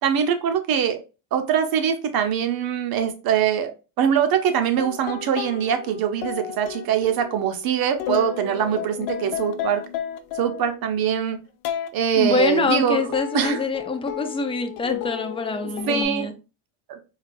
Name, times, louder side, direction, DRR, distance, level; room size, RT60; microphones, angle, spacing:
voice 1, 0.0-1.0 1.3-3.7 4.0-9.8 10.3-11.4 11.9-13.6 15.9-16.3 16.9-17.0, right 8 dB, 50° right, 0.8 m, -23 dB
sound 1, 4.8-10.9 11.6-11.9 13.1-16.1, left 10 dB, 80° left, 0.6 m, -32 dB
voice 2, 12.2-16.3, left 3 dB, 15° left, 0.4 m, -25 dB
4.4 x 2.3 x 2.5 m
supercardioid pair, 105°, 46 cm